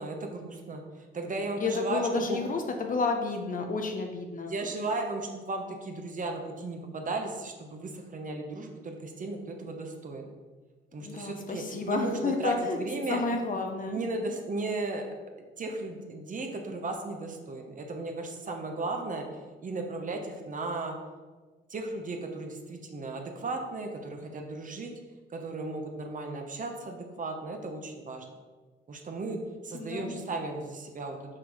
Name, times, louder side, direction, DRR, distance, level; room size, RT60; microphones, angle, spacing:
voice 1, 0.0-2.4 4.5-10.3 10.9-13.2 13.9-15.0 15.6-19.3 19.6-21.0 21.7-24.9 25.3-28.3 28.9-29.4 29.6-31.2, right 2 dB, 40° right, 3 dB, 1.0 m, -35 dB
voice 2, 1.6-4.5 11.0-12.8 13.1-14.0 29.8-30.1, left 4 dB, 40° left, 4 dB, 0.8 m, -31 dB
5.9 x 4.7 x 4.8 m, 1.3 s
cardioid pair, 90°, 20 cm